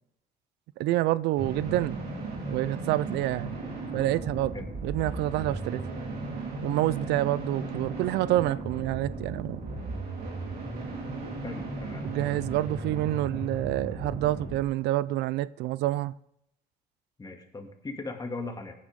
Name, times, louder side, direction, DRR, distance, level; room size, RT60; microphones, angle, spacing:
voice 1, 0.8-2.0 2.5-3.5 3.9-4.5 4.8-5.8 6.6-9.6 12.0-16.1, right 15 dB, 85° right, 0.4 m, -27 dB
sound 1, 1.4-14.6, right 2 dB, 65° right, 3.8 m, -36 dB
voice 2, 11.4-12.0 17.2-18.7, left 3 dB, 25° left, 2.3 m, -38 dB
17.5 x 10.0 x 3.7 m
cardioid pair, 110°, 17 cm